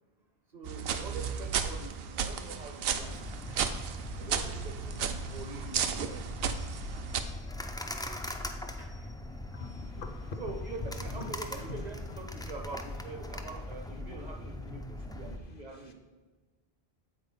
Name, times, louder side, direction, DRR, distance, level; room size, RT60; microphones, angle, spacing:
voice 1, 0.5-3.7 4.2-6.2 8.8-9.1 10.4-15.9, right 3 dB, 45° right, 4 dB, 0.9 m, -44 dB
sound 1, 0.6-7.2, right 7 dB, 75° right, 0.8 m, -34 dB
sound 2, 2.9-15.4, left 1 dB, 5° left, 0.3 m, -41 dB
voice 2, 9.5-10.4 10.8-12.2 15.5-15.9, left 3 dB, 60° left, 5 dB, 1.0 m, -43 dB
8.3 x 4.4 x 5.5 m, 1.4 s
omnidirectional pair, 1.0 m